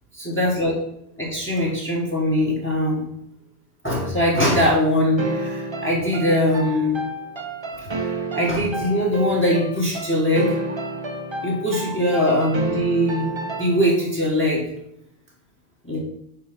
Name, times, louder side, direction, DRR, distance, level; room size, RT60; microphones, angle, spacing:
voice 1, 0.2-0.7 1.2-3.0 3.8-7.1 7.7-10.9 11.4-13.3 13.6-14.7 15.8-16.0, left 1 dB, 10° left, -3 dB, 1.2 m, -21 dB
sound 1, 5.2-14.1, right 2 dB, 30° right, 0.6 m, -30 dB
4.7 x 4.7 x 5.1 m, 0.76 s
omnidirectional pair, 1.1 m